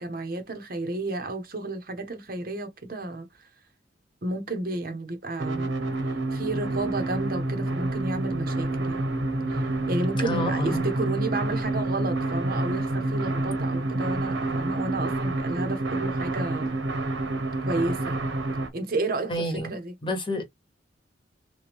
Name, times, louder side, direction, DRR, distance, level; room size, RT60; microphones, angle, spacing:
voice 1, 0.0-3.3 4.2-5.7 6.3-9.0 9.5-16.7 17.6-18.3 18.7-19.9, right 2 dB, 50° right, 0.8 m, -32 dB
sound 1, 5.4-18.7, right 2 dB, 80° right, 1.1 m, -28 dB
voice 2, 10.2-10.9 19.3-20.5, equal, 25° left, 1.1 m, -30 dB
3.4 x 3.0 x 3.4 m
head